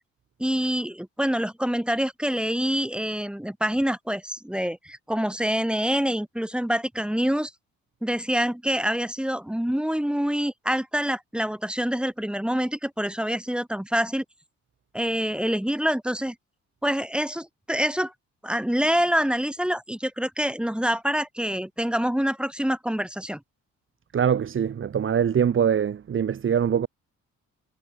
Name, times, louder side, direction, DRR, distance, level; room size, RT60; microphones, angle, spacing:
voice 1, 0.4-7.5 8.0-14.2 14.9-16.3 16.8-18.1 18.4-23.4, equal, 5° right, 2.6 m, -26 dB
voice 2, 24.1-26.9, right 8 dB, 45° right, 1.2 m, -23 dB
cardioid pair, 90°, 30 cm